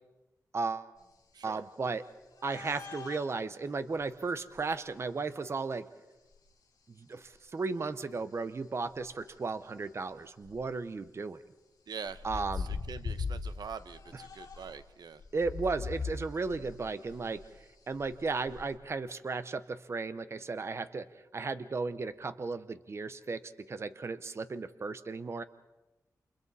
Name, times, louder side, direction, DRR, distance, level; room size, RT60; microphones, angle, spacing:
voice 1, 0.5-0.9 1.4-2.0 2.4-5.8 6.9-11.4 12.2-12.7 15.3-17.4 17.9-21.1 21.3-25.4, right 4 dB, 40° right, 12 dB, 0.7 m, -35 dB
sound 1, 2.4-3.3 4.5-4.6 6.3-6.4 7.3-7.4 8.9-9.2 9.7-9.8 10.2-10.6 12.0-14.8 15.2-18.7, left 4 dB, 65° left, 5.0 m, -40 dB
voice 2, 11.9-15.2, right 6 dB, 90° right, 12 dB, 0.9 m, -44 dB
29.5 x 27.0 x 4.1 m, 1.0 s
wide cardioid pair, 150°, 7 cm